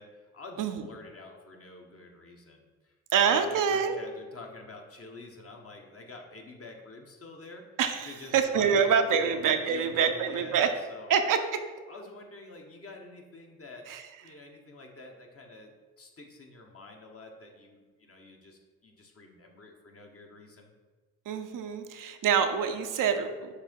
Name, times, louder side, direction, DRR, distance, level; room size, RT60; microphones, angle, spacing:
voice 1, 0.0-7.7 8.0-11.2 11.9-13.8 14.2-15.7 16.0-20.7, left 2 dB, 45° left, 1 dB, 1.4 m, -48 dB
voice 2, 3.1-3.9 7.8-10.7 11.1-11.4 13.9-14.0 21.3-23.5, right 7 dB, 70° right, 7 dB, 0.7 m, -26 dB
6.6 x 2.8 x 5.3 m, 1.4 s
supercardioid pair, 45°, 33 cm